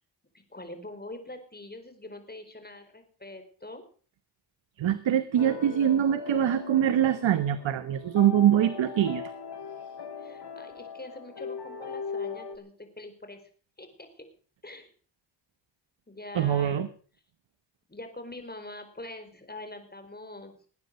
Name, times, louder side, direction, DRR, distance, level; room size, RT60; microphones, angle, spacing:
voice 1, 0.3-3.8 10.2-13.4 13.8-14.3 14.6-14.9 16.1-16.9 17.9-20.5, left 2 dB, 20° left, 7 dB, 4.5 m, -44 dB
voice 2, 4.8-9.2 16.3-16.9, right 10 dB, 85° right, 12 dB, 1.1 m, -24 dB
sound 1, 5.4-12.6, left 5 dB, 65° left, 3.1 m, -39 dB
19.5 x 9.6 x 6.4 m, 0.43 s
cardioid pair, 55°, 44 cm